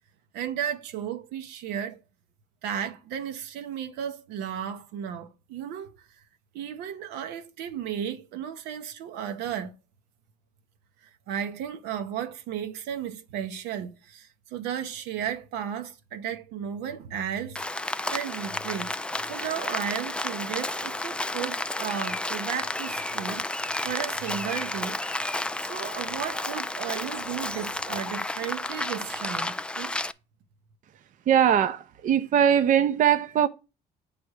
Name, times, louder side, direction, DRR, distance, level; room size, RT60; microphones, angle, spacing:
voice 1, 0.3-2.0 2.6-6.1 6.5-9.7 11.3-17.6 18.1-25.0 25.6-30.0, right 9 dB, 90° right, 0.9 m, -34 dB
Rain, 17.6-30.1, left 2 dB, 5° left, 0.3 m, -32 dB
voice 2, 31.3-33.5, right 9 dB, 50° right, 0.6 m, -21 dB
8.4 x 3.4 x 6.3 m
cardioid pair, 110°, 17 cm